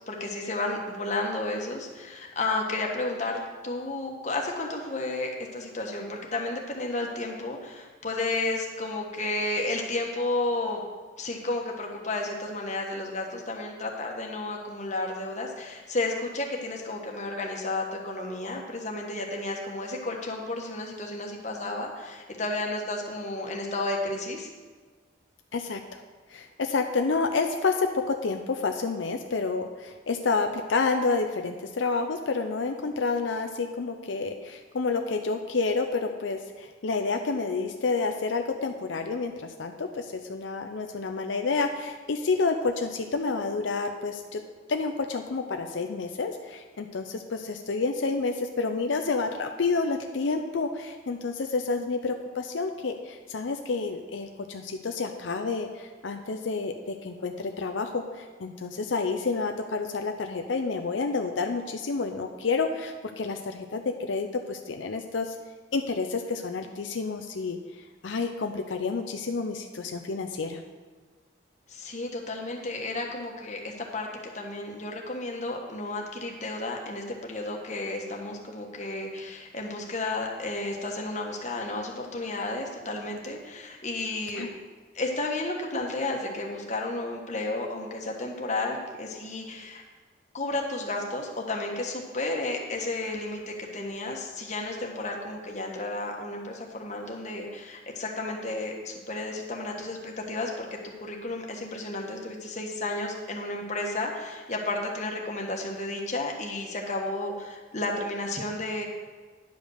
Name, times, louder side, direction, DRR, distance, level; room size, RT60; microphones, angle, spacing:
voice 1, 0.1-10.8 11.2-24.5 71.7-74.1 74.3-84.5 84.9-89.8 90.3-108.8, left 2 dB, 40° left, 1 dB, 1.3 m, -32 dB
voice 2, 25.5-26.0 26.3-44.4 44.7-65.4 65.7-67.6 68.0-70.6 84.4-84.5, left 4 dB, 85° left, 5 dB, 0.6 m, -29 dB
10.5 x 5.2 x 6.4 m, 1.4 s
head